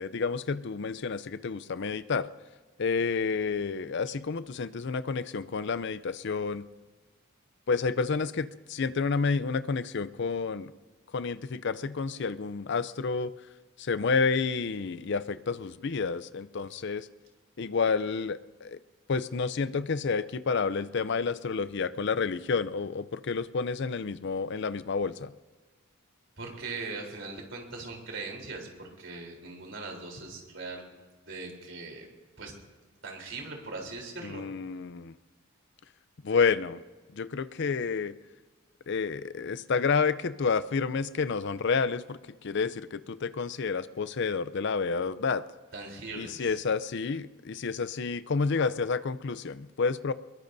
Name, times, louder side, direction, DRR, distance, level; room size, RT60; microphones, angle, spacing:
voice 1, 0.0-2.3 2.8-6.7 7.7-10.7 11.1-13.3 13.8-17.1 17.6-18.8 19.1-25.3 34.2-35.1 36.2-36.8 37.1-38.2 38.9-45.4 46.2-50.1, left 5 dB, 55° left, 14 dB, 0.5 m, -30 dB
voice 2, 26.4-30.8 31.2-32.1 32.4-32.5 33.0-34.6 45.7-46.6, right 3 dB, 60° right, 1 dB, 3.7 m, -40 dB
24.0 x 21.5 x 2.7 m, 1.3 s
head